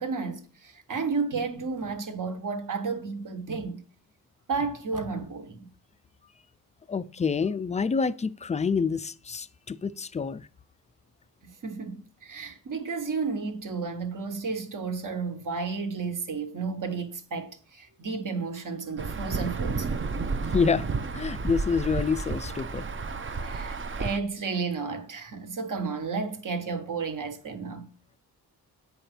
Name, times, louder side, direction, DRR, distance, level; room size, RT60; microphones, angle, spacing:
voice 1, 0.0-3.8 4.5-5.7 11.6-19.9 23.4-27.9, right 4 dB, 55° right, 1.3 m, -32 dB
voice 2, 6.9-10.5 20.5-20.9 21.1-22.9, left 5 dB, 20° left, 0.3 m, -27 dB
Insect / Thunder / Rain, 19.0-24.2, right 4 dB, 35° right, 0.6 m, -31 dB
8.1 x 5.1 x 4.4 m
cardioid pair, 85°, 38 cm